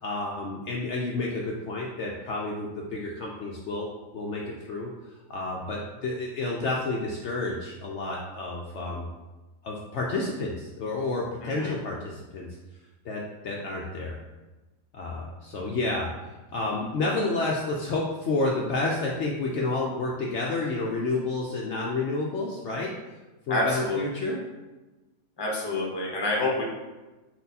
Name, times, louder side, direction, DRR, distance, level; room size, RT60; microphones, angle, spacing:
voice 1, 0.0-3.9 4.1-9.1 9.6-12.5 13.0-14.2 14.9-22.9 23.5-24.4, left 2 dB, 65° left, -2 dB, 0.8 m, -30 dB
voice 2, 11.4-11.7 23.5-24.0 25.4-26.6, left 2 dB, 20° left, -2 dB, 0.7 m, -27 dB
4.5 x 4.2 x 2.7 m, 1.1 s
omnidirectional pair, 1.5 m